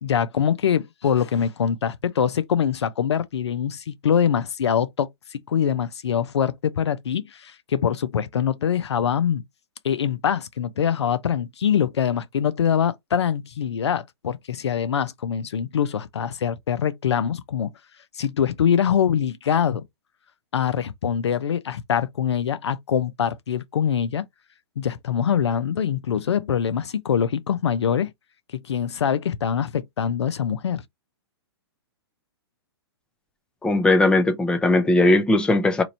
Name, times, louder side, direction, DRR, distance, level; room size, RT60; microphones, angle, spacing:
voice 1, 0.0-9.4 9.8-17.7 18.1-19.8 20.5-24.2 24.8-28.1 28.5-30.8, left 8 dB, 85° left, 0.6 m, -24 dB
voice 2, 33.6-35.8, left 2 dB, 5° left, 0.6 m, -18 dB
3.0 x 2.5 x 4.2 m
hypercardioid pair, 140°, 14 cm